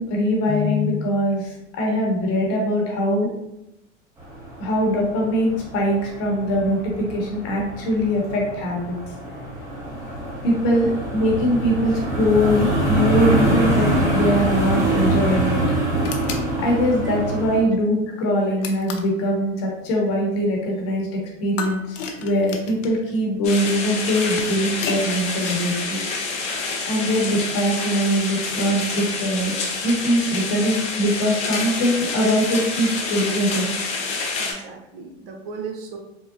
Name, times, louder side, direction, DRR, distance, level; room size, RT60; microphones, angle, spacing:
voice 1, 0.0-3.3 4.6-8.9 10.4-15.6 16.6-26.0 26.8-33.7, equal, 40° left, -1 dB, 1.0 m, -22 dB
sound 1, 4.2-17.6, right 1 dB, 10° right, 0.8 m, -25 dB
sound 2, 16.0-16.5 18.6-19.2 21.6-23.0 24.1-25.1, left 5 dB, 80° left, 0.6 m, -32 dB
sound 3, 23.4-34.5, left 4 dB, 20° left, 0.4 m, -28 dB
voice 2, 34.4-36.0, right 5 dB, 45° right, 3 dB, 0.5 m, -36 dB
3.7 x 2.0 x 2.4 m, 0.89 s
hypercardioid pair, 125°, 37 cm